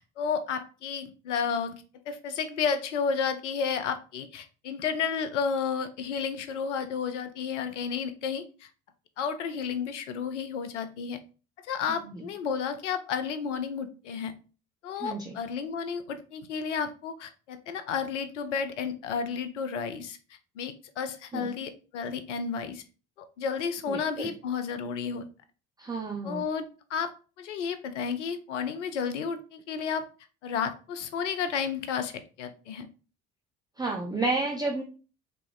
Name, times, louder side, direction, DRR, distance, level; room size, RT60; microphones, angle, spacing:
voice 1, 0.0-8.7 9.2-11.2 11.6-14.3 14.8-20.2 20.6-22.8 23.4-25.3 26.2-27.1 27.4-30.1 30.4-32.9, left 6 dB, 80° left, 9 dB, 0.6 m, -32 dB
voice 2, 15.0-15.4 21.3-21.5 23.9-24.3 25.8-26.4 33.8-34.8, right 3 dB, 10° right, 0 dB, 0.6 m, -31 dB
3.3 x 3.0 x 3.6 m, 0.36 s
figure-of-eight pair, 55°, 35 cm